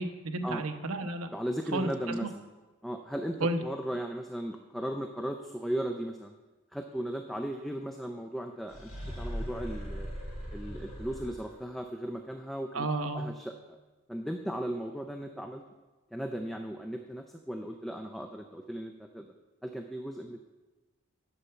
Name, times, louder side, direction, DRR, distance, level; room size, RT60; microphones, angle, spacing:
voice 1, 0.0-1.3 1.7-1.9 2.2-2.3 3.4-3.6 12.7-13.3, right 2 dB, 90° right, 7 dB, 0.9 m, -31 dB
voice 2, 1.3-2.4 2.8-6.3 6.7-8.9 9.2-10.1 10.5-12.9 13.1-13.5 14.1-15.6 16.1-19.3 19.6-20.4, equal, ahead, 4 dB, 0.4 m, -36 dB
sound 1, 8.7-11.7, equal, 40° left, 3.4 m, -39 dB
9.9 x 5.6 x 6.8 m, 1.2 s
head